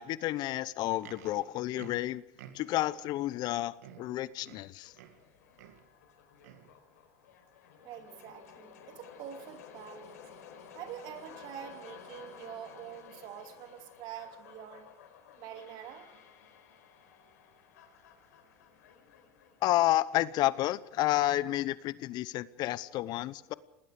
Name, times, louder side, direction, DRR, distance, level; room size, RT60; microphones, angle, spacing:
voice 1, 0.0-2.2 2.5-4.9 19.6-23.5, left 15 dB, 55° left, 0.9 m, -30 dB
Livestock farm animals working animals, 0.7-2.9 3.5-3.6 3.8-5.3 5.6-5.9 6.4-6.8 7.4-7.5, right 10 dB, 80° right, 2.2 m, -53 dB
sound 1, 4.8-20.9, left 7 dB, 80° left, 4.5 m, -54 dB
voice 2, 7.8-10.2 10.7-14.9 15.4-16.2, right 9 dB, 60° right, 2.9 m, -46 dB
28.0 x 19.0 x 5.0 m
hypercardioid pair, 85°, 9 cm